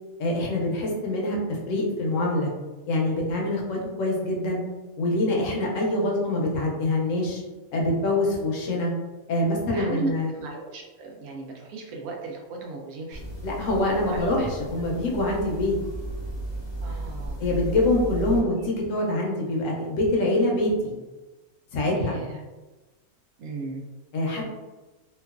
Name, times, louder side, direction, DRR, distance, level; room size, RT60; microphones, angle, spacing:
voice 1, 0.2-2.5 2.9-4.6 5.0-7.4 7.7-8.9 9.3-10.3 13.4-15.8 17.4-20.9 21.7-22.1 24.1-24.4, left 1 dB, 70° left, -1 dB, 0.9 m, -25 dB
voice 2, 9.7-13.2 13.9-14.3 16.8-17.4 22.0-22.4 23.4-23.8, right 2 dB, 80° right, 1 dB, 1.0 m, -35 dB
sound 1, 13.1-18.4, right 2 dB, 30° left, 0.5 m, -34 dB
2.9 x 2.3 x 2.3 m, 1.2 s
omnidirectional pair, 1.5 m